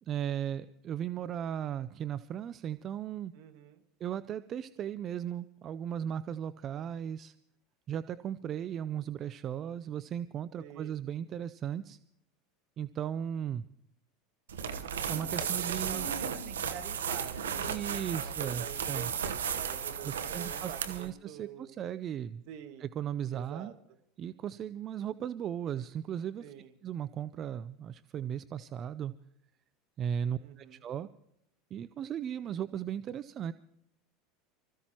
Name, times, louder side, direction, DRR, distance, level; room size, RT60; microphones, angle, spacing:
voice 1, 0.0-3.3 4.0-7.3 7.9-12.0 12.8-13.7 15.1-16.1 17.7-19.1 20.0-22.4 22.8-23.7 24.2-26.5 26.8-29.1 30.0-31.1 31.7-33.5, right 9 dB, 40° right, 14 dB, 0.5 m, -36 dB
voice 2, 3.3-3.8 10.6-11.0 15.6-21.8 22.5-22.9 23.3-23.7 26.4-26.7 30.4-30.8, right 9 dB, 65° right, 7 dB, 1.9 m, -47 dB
sound 1, 14.5-21.1, right 7 dB, 90° right, 1.1 m, -35 dB
25.5 x 15.0 x 3.0 m, 0.75 s
hypercardioid pair, 90°, 0 cm